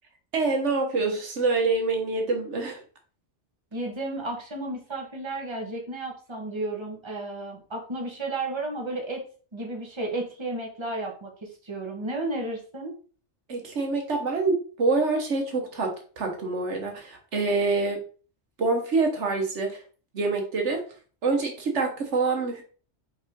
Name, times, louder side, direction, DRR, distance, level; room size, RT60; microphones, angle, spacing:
voice 1, 0.3-2.8 13.5-18.0 18.6-19.8 20.1-20.8 21.2-22.6, right 3 dB, 80° right, 3 dB, 1.5 m, -26 dB
voice 2, 3.7-9.2 9.5-11.3 11.6-12.9, right 2 dB, 25° right, 0 dB, 1.5 m, -33 dB
5.5 x 4.9 x 3.6 m, 0.40 s
omnidirectional pair, 1.2 m